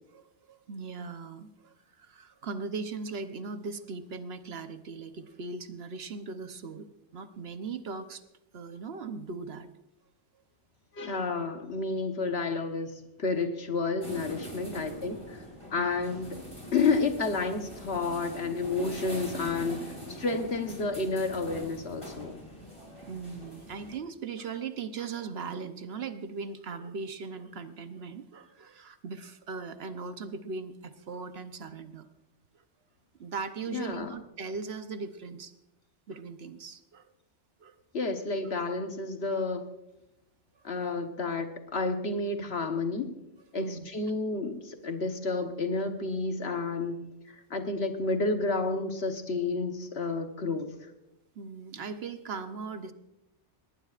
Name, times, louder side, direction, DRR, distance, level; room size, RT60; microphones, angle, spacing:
voice 1, 0.1-8.2 8.5-9.7 14.6-14.8 15.8-16.0 18.0-18.1 23.0-32.1 33.2-35.5 36.1-37.1 37.6-37.7 40.8-40.9 43.6-43.9 51.3-52.9, right 4 dB, 60° right, 9 dB, 1.1 m, -39 dB
voice 2, 10.9-12.9 13.2-15.4 15.7-16.3 16.7-22.4 33.7-34.1 37.9-39.7 40.6-43.1 43.5-47.0 47.5-50.7, left 3 dB, 60° left, 5 dB, 1.4 m, -30 dB
sound 1, 14.0-23.9, equal, 25° left, 4.7 m, -43 dB
19.5 x 18.5 x 2.5 m, 0.90 s
omnidirectional pair, 1.2 m